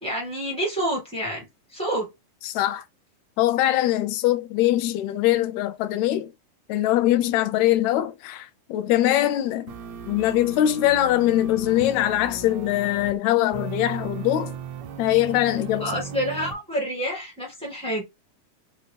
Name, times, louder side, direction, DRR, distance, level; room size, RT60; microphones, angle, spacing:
voice 1, 0.0-1.5 1.7-2.1 15.8-18.0, equal, 5° left, 0.8 m, -28 dB
voice 2, 2.4-2.8 3.4-6.3 6.7-9.7 10.1-14.6 15.0-16.0, left 13 dB, 80° left, 1.7 m, -22 dB
sound 1, 9.7-13.1 13.5-16.5, right 6 dB, 75° right, 1.7 m, -37 dB
5.3 x 2.6 x 3.3 m
omnidirectional pair, 3.8 m